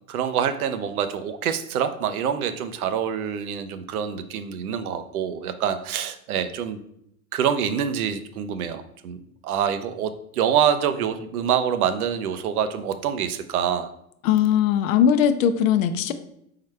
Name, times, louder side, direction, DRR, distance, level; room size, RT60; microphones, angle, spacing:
voice 1, 0.1-6.8 7.3-13.9, right 8 dB, 85° right, 10 dB, 0.6 m, -26 dB
voice 2, 14.2-16.1, left 9 dB, 65° left, 10 dB, 0.6 m, -19 dB
4.3 x 3.8 x 3.2 m, 0.74 s
hypercardioid pair, 105°, 43 cm